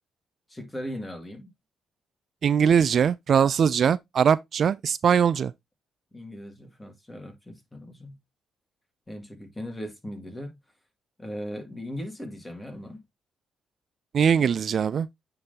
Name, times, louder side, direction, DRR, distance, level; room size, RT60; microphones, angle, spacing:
voice 1, 0.5-1.5 6.1-8.2 9.1-10.6 11.2-13.0, equal, 10° left, 2.2 m, -38 dB
voice 2, 2.4-5.5 14.1-15.1, right 7 dB, 55° right, 0.3 m, -21 dB
9.1 x 3.8 x 2.8 m
cardioid pair, 90°, 0 cm